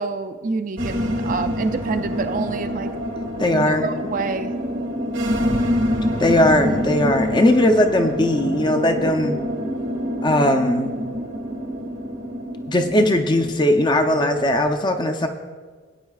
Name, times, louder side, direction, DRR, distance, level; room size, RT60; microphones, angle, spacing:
voice 1, 0.0-2.9 3.5-4.5, right 4 dB, 40° right, 8 dB, 0.4 m, -27 dB
sound 1, 0.8-14.7, equal, 80° right, 1.6 m, -26 dB
voice 2, 3.4-3.9 6.2-9.4 10.2-11.0 12.7-15.3, left 1 dB, 20° left, 6 dB, 0.6 m, -19 dB
17.5 x 8.9 x 2.4 m, 1.5 s
head